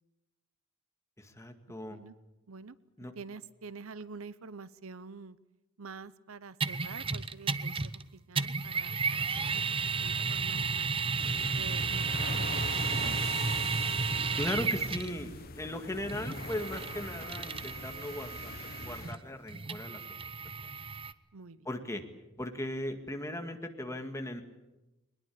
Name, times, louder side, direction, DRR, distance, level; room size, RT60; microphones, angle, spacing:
voice 1, 1.2-2.0 3.0-3.1 14.4-20.0 21.7-22.0 22.4-24.4, left 1 dB, 15° left, 6 dB, 2.0 m, -38 dB
voice 2, 3.2-5.4 5.8-9.6 10.0-10.9 11.5-13.2 21.3-21.7, right 4 dB, 80° right, 17 dB, 0.8 m, -47 dB
sound 1, 6.6-8.0 8.3-15.2 16.1-21.1, right 4 dB, 25° right, 0.7 m, -33 dB
sound 2, 9.8-17.7, right 2 dB, 45° right, 5.3 m, -58 dB
sound 3, 11.2-19.1, left 4 dB, 45° left, 1.1 m, -43 dB
21.5 x 20.5 x 8.6 m, 1.0 s
head